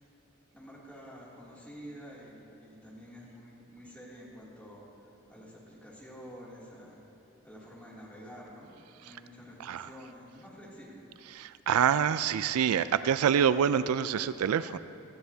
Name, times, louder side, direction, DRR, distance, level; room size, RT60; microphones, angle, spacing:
voice 1, 0.5-7.0 7.4-8.7 9.0-11.0, equal, 5° left, -7 dB, 2.7 m, -49 dB
voice 2, 11.3-14.8, right 8 dB, 85° right, 14 dB, 0.3 m, -26 dB
19.5 x 13.5 x 2.8 m, 2.8 s
head